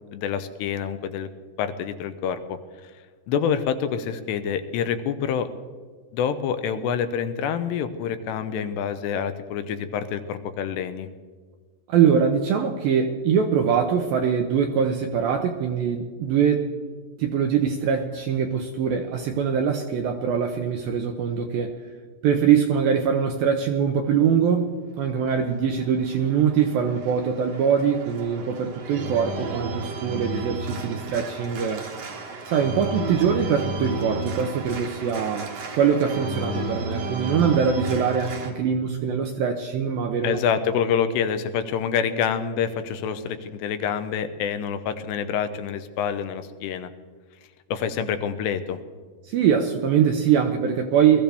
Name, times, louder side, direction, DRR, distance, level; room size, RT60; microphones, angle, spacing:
voice 1, 0.1-1.3 1.6-2.6 3.3-5.5 6.1-11.1 40.2-46.9 47.7-48.8, left 7 dB, 85° left, 10 dB, 2.9 m, -27 dB
voice 2, 11.9-16.7 17.2-21.7 22.2-24.7 25.0-31.8 32.5-40.4 49.2-51.2, right 7 dB, 80° right, 4 dB, 2.1 m, -23 dB
Organ, 25.3-38.5, right 2 dB, 60° right, 1.7 m, -33 dB
21.0 x 14.0 x 3.5 m, 1.5 s
omnidirectional pair, 5.0 m